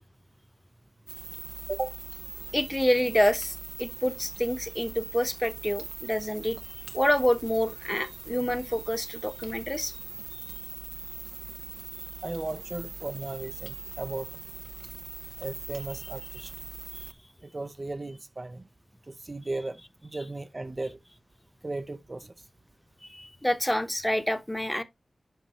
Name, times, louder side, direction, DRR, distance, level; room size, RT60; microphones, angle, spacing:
sound 1, 1.1-17.1, right 4 dB, 85° right, 0.7 m, -41 dB
voice 1, 2.5-6.6 6.9-9.9 23.1-24.8, left 1 dB, 10° left, 0.9 m, -27 dB
voice 2, 12.2-14.4 15.4-16.5 17.4-18.7 19.1-21.0 21.6-22.3, right 2 dB, 35° right, 0.5 m, -36 dB
10.0 x 5.2 x 3.0 m
wide cardioid pair, 75°, 0 cm